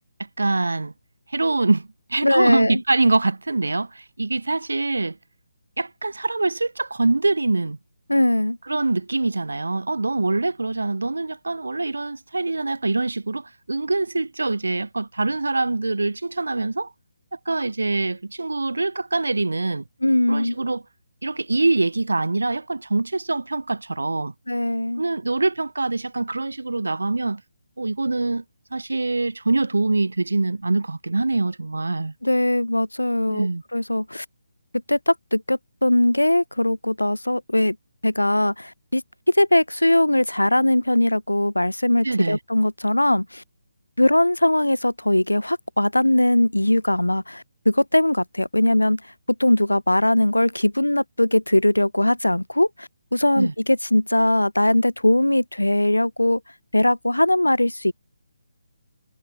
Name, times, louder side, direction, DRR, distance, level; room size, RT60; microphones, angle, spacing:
voice 1, 0.2-0.9 1.3-5.2 5.8-7.8 8.7-16.9 17.3-19.8 20.3-20.8 21.2-24.3 25.0-27.4 27.8-28.4 28.7-32.1 33.3-33.6 42.0-42.4 53.4-53.5, right 3 dB, 70° right, 0.7 m, -24 dB
voice 2, 2.2-2.8 8.1-8.6 20.0-20.6 24.5-25.0 32.2-34.3 34.9-37.8 38.0-39.0 39.3-43.4 44.0-49.0 49.4-56.4 56.7-57.9, left 1 dB, 85° left, 0.5 m, -20 dB
figure-of-eight pair, 145°, 0 cm